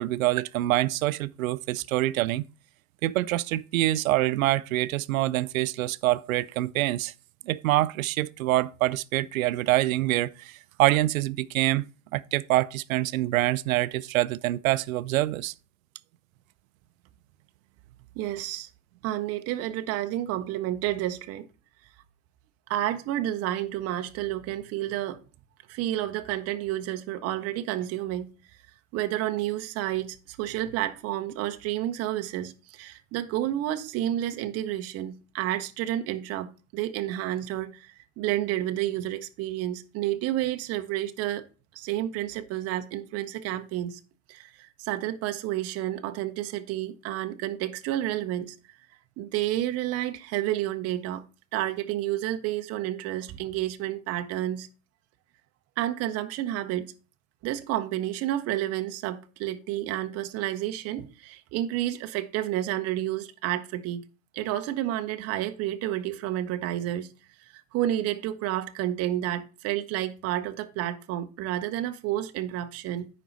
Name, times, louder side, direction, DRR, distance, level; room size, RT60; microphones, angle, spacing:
voice 1, 0.0-2.5 3.0-7.1 7.5-11.9 12.1-15.5, right 16 dB, 80° right, 0.6 m, -25 dB
voice 2, 18.2-18.7 19.0-21.5 22.7-25.2 25.7-28.3 28.9-41.4 41.7-44.0 44.3-48.5 49.2-51.2 51.5-54.7 55.8-56.9 57.4-64.0 64.3-67.1 67.5-73.1, right 13 dB, 35° right, 0.9 m, -30 dB
9.1 x 5.3 x 4.0 m
supercardioid pair, 125°, 41 cm